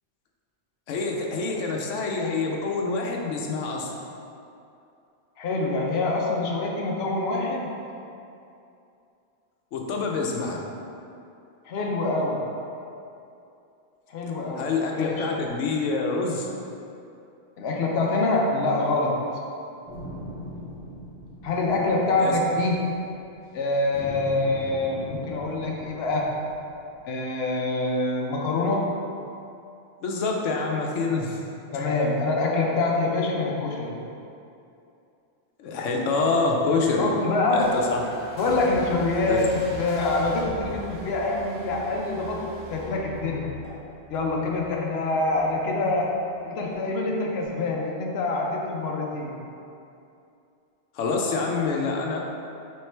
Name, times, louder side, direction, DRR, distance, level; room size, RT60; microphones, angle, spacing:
voice 1, 0.9-4.0 9.7-10.6 14.6-16.5 22.2-22.3 30.0-31.4 31.7-31.9 35.6-37.1 37.5-38.0 39.3-39.4 50.9-52.2, left 3 dB, 90° left, 0 dB, 1.0 m, -26 dB
voice 2, 5.4-7.7 11.6-12.6 14.1-15.4 17.6-19.4 21.4-23.1 23.5-26.4 27.1-29.0 31.7-34.0 37.0-37.7 38.3-43.5 44.1-49.4, left 2 dB, 65° left, -1 dB, 0.8 m, -25 dB
sound 1, 19.9-23.4 23.9-27.3, right 1 dB, 75° right, 1.9 m, -41 dB
sound 2, 37.6-45.7 46.1-46.4, right 1 dB, 25° right, 1.5 m, -42 dB
sound 3, 41.3-41.8 42.2-42.4 42.8-43.3 43.6-43.7 44.1-44.2 44.7-44.8 45.2-46.4 46.7-46.8 47.2-47.5, equal, 10° right, 1.4 m, -47 dB
4.4 x 3.7 x 3.2 m, 2.7 s
omnidirectional pair, 1.2 m